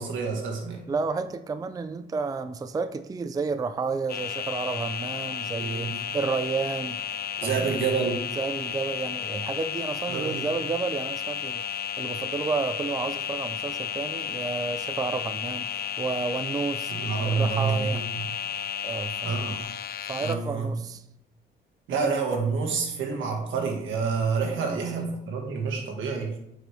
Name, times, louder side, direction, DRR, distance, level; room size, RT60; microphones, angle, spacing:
voice 1, 0.0-0.8 5.6-6.0 7.4-8.2 10.1-10.4 16.9-18.0 19.2-19.6 20.2-20.7 21.9-26.4, right 5 dB, 75° right, 2 dB, 1.8 m, -28 dB
voice 2, 0.9-7.0 7.4-7.9 8.4-11.6 12.0-16.9 17.2-18.1 18.8-19.7 20.1-21.0 24.7-24.8, right 4 dB, 20° right, 11 dB, 0.4 m, -31 dB
sound 1, 4.1-20.4, left 8 dB, 50° left, 0.5 m, -33 dB
8.6 x 5.0 x 3.5 m, 0.79 s
cardioid pair, 90°, 20 cm